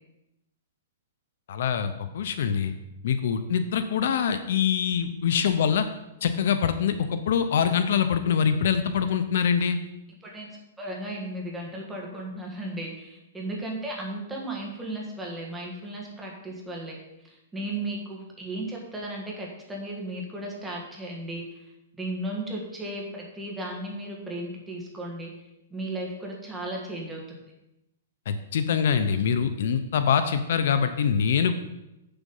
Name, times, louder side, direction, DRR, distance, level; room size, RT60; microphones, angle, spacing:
voice 1, 1.5-2.7 3.0-5.9 6.2-9.8 28.3-31.6, left 7 dB, 60° left, 9 dB, 0.7 m, -24 dB
voice 2, 10.8-17.0 17.2-21.4 22.0-25.3 25.7-27.4, right 1 dB, 5° right, -2 dB, 1.6 m, -35 dB
7.4 x 6.8 x 5.4 m, 0.92 s
hypercardioid pair, 165°, 0 cm